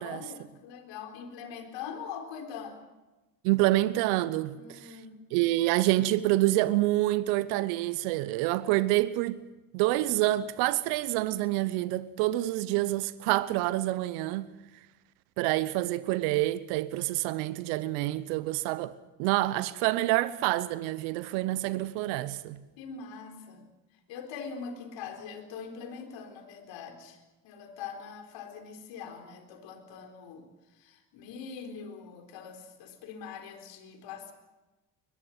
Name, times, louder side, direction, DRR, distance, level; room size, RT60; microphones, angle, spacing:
voice 1, 0.0-2.8 4.5-5.2 22.8-23.6 24.1-27.2 27.4-30.5 30.8-34.3, left 6 dB, 70° left, 4.1 m, -42 dB
voice 2, 3.4-5.0 5.3-9.4 9.7-14.5 15.4-22.6, right 17 dB, 75° right, 1.1 m, -27 dB
22.0 x 21.0 x 7.8 m
hypercardioid pair, 60°, 46 cm